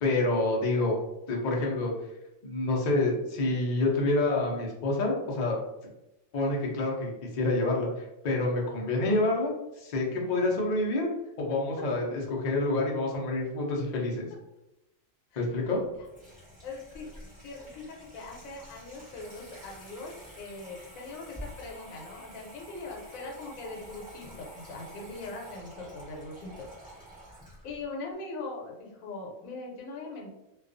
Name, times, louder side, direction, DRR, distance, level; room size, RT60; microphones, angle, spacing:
voice 1, 0.0-1.0 1.3-1.9 2.4-5.6 6.3-11.1 11.4-14.3 15.4-15.8, left 2 dB, 60° left, -2 dB, 0.4 m, -28 dB
Water tap faucet / Sink (filling or washing), 15.7-27.8, right 1 dB, 5° right, 1.0 m, -49 dB
voice 2, 16.6-17.1 17.4-26.7 27.6-30.3, left 3 dB, 80° left, -1 dB, 1.1 m, -41 dB
2.3 x 2.3 x 2.5 m, 0.93 s
omnidirectional pair, 1.4 m